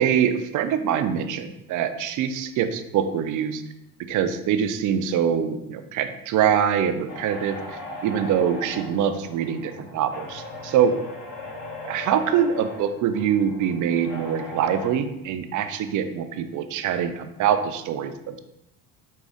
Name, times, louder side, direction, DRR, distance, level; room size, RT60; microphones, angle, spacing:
voice 1, 0.0-3.6 4.1-10.9 11.8-18.4, right 8 dB, 45° right, 9 dB, 0.5 m, -24 dB
sound 1, 7.1-14.9, left 1 dB, 45° left, 1.2 m, -39 dB
5.2 x 2.4 x 3.6 m, 0.86 s
supercardioid pair, 110°, 43 cm